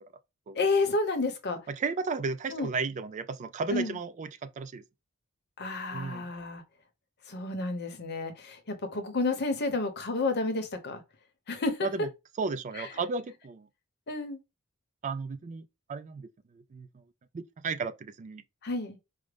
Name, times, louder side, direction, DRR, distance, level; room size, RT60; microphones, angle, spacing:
voice 1, 0.5-1.6 2.5-2.7 3.7-4.0 5.6-6.6 7.3-11.0 11.5-11.9 12.7-12.9 14.1-14.4 18.6-19.0, left 3 dB, 50° left, 0.8 m, -30 dB
voice 2, 1.7-4.8 5.9-6.2 11.8-12.1 12.4-13.7 15.0-15.6 15.9-16.3 16.5-17.0 17.3-18.4, right 4 dB, 35° right, 0.3 m, -34 dB
4.9 x 2.1 x 3.3 m
head